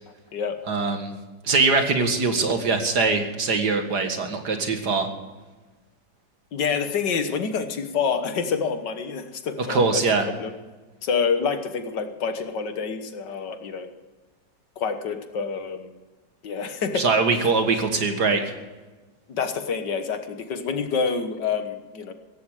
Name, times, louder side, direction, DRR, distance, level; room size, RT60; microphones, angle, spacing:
voice 1, 0.7-1.1 1.4-5.1 9.7-10.3 17.0-18.5, right 4 dB, 60° right, 6 dB, 2.4 m, -22 dB
voice 2, 6.5-10.0 10.4-10.5 11.0-13.9 14.8-16.0 16.4-17.1 19.3-22.1, left 6 dB, 70° left, 8 dB, 1.9 m, -27 dB
16.5 x 15.0 x 4.9 m, 1.2 s
omnidirectional pair, 2.0 m